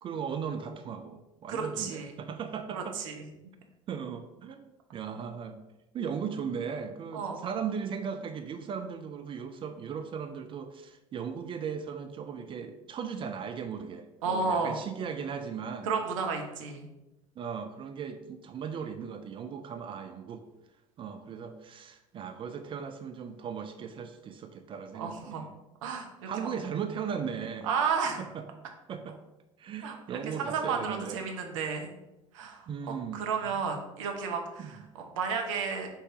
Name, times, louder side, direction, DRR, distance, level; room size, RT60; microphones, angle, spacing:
voice 1, 0.0-3.0 3.9-5.6 5.9-15.9 17.4-20.4 21.0-25.5 26.3-27.7 28.2-28.4 28.9-29.2 29.6-31.2 32.7-33.6 34.6-34.7, right 7 dB, 30° right, 7 dB, 0.4 m, -37 dB
voice 2, 1.5-2.1 2.7-3.2 7.1-7.4 14.2-14.8 15.8-16.9 24.9-25.4 25.8-26.5 27.6-28.2 29.8-31.9 32.3-32.7 33.1-35.9, right 5 dB, 65° right, 3 dB, 0.8 m, -32 dB
5.7 x 2.7 x 3.5 m, 0.98 s
figure-of-eight pair, 65°, 18 cm